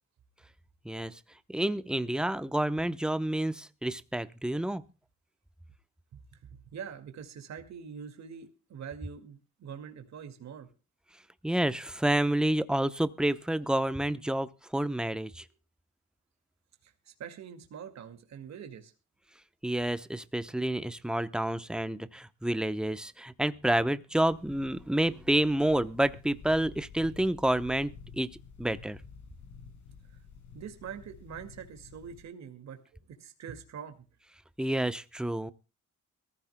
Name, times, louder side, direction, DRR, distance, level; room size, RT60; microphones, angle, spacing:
voice 1, 0.8-1.2 1.5-4.8 11.4-15.4 19.6-28.3 28.6-29.0 34.6-35.5, right 1 dB, 5° right, 13 dB, 0.8 m, -29 dB
voice 2, 6.1-10.7 16.8-18.9 30.5-32.8 33.1-34.0, right 7 dB, 65° right, 7 dB, 2.2 m, -44 dB
sound 1, 24.2-32.2, left 5 dB, 85° left, 5.4 m, -51 dB
22.5 x 15.0 x 2.2 m, 0.32 s
cardioid pair, 90°, 30 cm